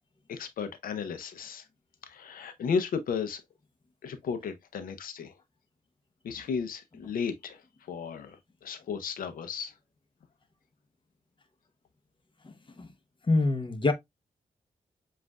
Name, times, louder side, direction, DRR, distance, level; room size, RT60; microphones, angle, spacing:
voice 1, 0.3-1.6 2.0-3.4 4.0-5.3 6.2-7.6 7.9-9.7, left 6 dB, 85° left, 0.6 m, -34 dB
voice 2, 12.4-12.9 13.3-13.9, left 2 dB, 35° left, 0.8 m, -26 dB
7.3 x 2.5 x 2.2 m
cardioid pair, 65°, 14 cm